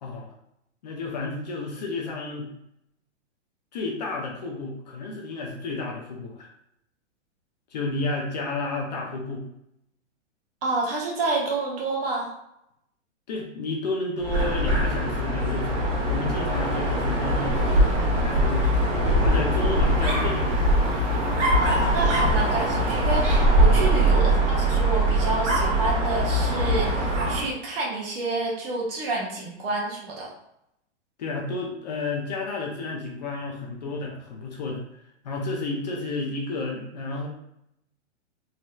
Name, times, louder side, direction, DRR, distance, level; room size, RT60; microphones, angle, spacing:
voice 1, 0.0-0.3 0.8-2.5 3.7-6.5 7.7-9.4 13.3-17.9 18.2-20.7 22.2-22.3 24.2-24.5 31.2-34.9 35.2-37.3, left 3 dB, 35° left, -1 dB, 0.5 m, -31 dB
voice 2, 10.6-12.3 21.5-30.3, right 2 dB, 50° right, -3 dB, 1.1 m, -29 dB
Dog, 14.2-27.5, right 1 dB, 85° right, 1.1 m, -22 dB
3.2 x 2.7 x 2.3 m, 0.78 s
hypercardioid pair, 160°, 36 cm